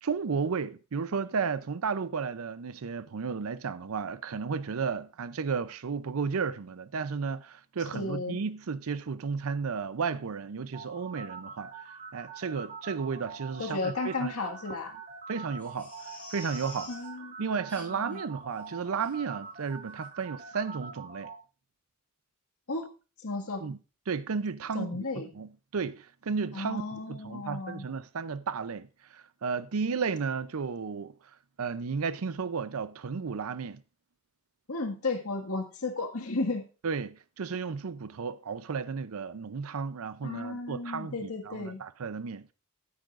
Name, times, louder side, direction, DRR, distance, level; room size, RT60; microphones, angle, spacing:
voice 1, 0.0-11.7 12.1-14.3 15.3-15.9 16.3-16.9 17.4-21.3 23.6-23.8 24.1-25.1 25.3-28.9 29.1-31.1 31.6-33.8 36.8-42.5, right 5 dB, 75° right, 0.5 m, -33 dB
voice 2, 7.9-8.4 13.6-14.9 16.9-17.3 17.8-18.2 22.7-22.9 23.2-23.7 24.7-25.3 26.5-27.9 34.7-36.7 40.2-41.8, left 3 dB, 85° left, 1.9 m, -34 dB
sound 1, 10.7-21.3, right 5 dB, 35° right, 2.8 m, -44 dB
Crying sobbing, 15.6-17.1 17.7-18.2 18.5-18.6 19.0-19.1 19.6-19.7 20.0-20.1, left 2 dB, 5° left, 6.2 m, -48 dB
13.0 x 9.6 x 2.5 m
head